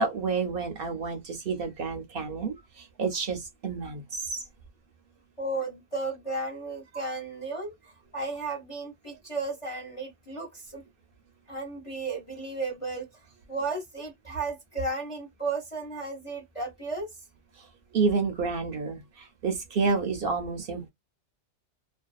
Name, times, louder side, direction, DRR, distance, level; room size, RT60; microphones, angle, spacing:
voice 1, 0.0-4.4 17.6-17.7 17.9-20.9, right 4 dB, 60° right, 0.7 m, -29 dB
voice 2, 5.4-10.8 11.5-13.1 13.5-17.1, right 3 dB, 35° left, 0.6 m, -34 dB
2.5 x 2.1 x 2.3 m
omnidirectional pair, 1.2 m